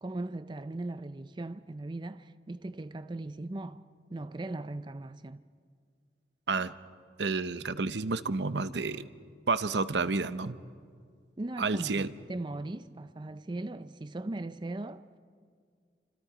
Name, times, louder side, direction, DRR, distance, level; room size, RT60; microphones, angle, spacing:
voice 1, 0.0-3.8 4.1-5.4 11.4-15.2, right 2 dB, 25° right, 0.5 m, -38 dB
voice 2, 7.2-9.1 9.5-10.6 11.6-12.1, right 4 dB, 80° right, 0.8 m, -30 dB
29.0 x 26.0 x 5.0 m
head